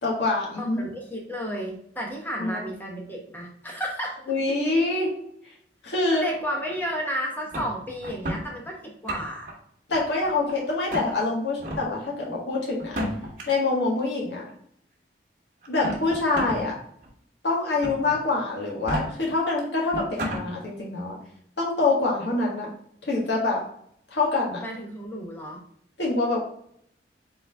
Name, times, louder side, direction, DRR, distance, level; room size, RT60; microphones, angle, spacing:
voice 1, 0.0-0.8 2.4-2.6 4.3-5.1 5.8-6.2 9.9-13.0 13.5-14.4 15.7-16.8 17.4-21.2 21.6-22.7 23.0-23.6 24.1-24.6 26.0-26.4, left 3 dB, 80° left, -3 dB, 1.6 m, -25 dB
voice 2, 0.6-4.2 6.1-9.5 24.6-25.6, equal, 10° left, -1 dB, 1.0 m, -32 dB
sound 1, 7.5-8.4 8.9-9.5 9.9-10.5 10.9-11.1 11.6-11.8 12.8-13.4 14.5-14.6 15.6-16.6 17.0-17.1 17.8-18.2 18.7-19.0 19.6-19.7 19.9-20.4, equal, 50° right, 1.2 m, -31 dB
3.9 x 3.9 x 3.4 m, 0.69 s
head